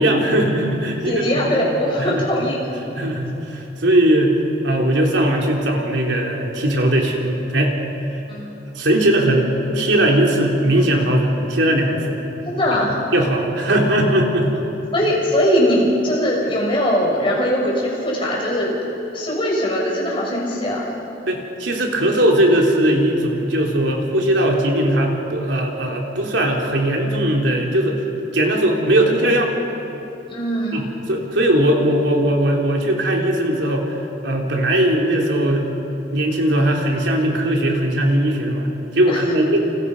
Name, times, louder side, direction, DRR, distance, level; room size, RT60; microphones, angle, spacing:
voice 1, 0.0-1.7 2.0-2.3 3.0-4.4 4.6-7.8 8.8-9.5 9.7-12.2 13.1-14.5 21.3-28.0 28.3-29.5 30.7-35.7 36.1-39.7, right 1 dB, 80° right, 0 dB, 3.5 m, -19 dB
voice 2, 1.0-2.6 8.3-8.5 12.4-13.0 14.9-18.7 19.1-20.9 30.3-30.9 39.1-39.2, equal, 30° left, -3 dB, 6.5 m, -20 dB
29.0 x 28.0 x 5.5 m, 3.0 s
head